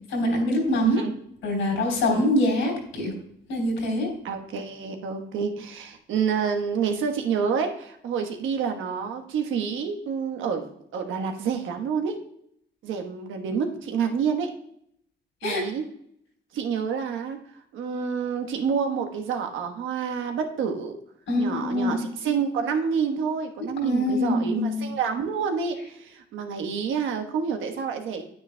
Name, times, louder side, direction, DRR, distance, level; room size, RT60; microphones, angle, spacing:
voice 1, 0.1-1.0 1.4-3.1 3.5-4.1 15.4-15.6 21.3-22.0 23.8-24.9, left 1 dB, 80° left, 1 dB, 3.4 m, -24 dB
voice 2, 0.7-1.1 2.1-2.3 4.2-12.2 12.8-14.5 15.4-15.8 16.5-17.4 17.7-21.0 21.4-28.2, right 6 dB, 80° right, 5 dB, 1.2 m, -28 dB
9.8 x 9.2 x 2.3 m, 0.71 s
cardioid pair, 90°, 20 cm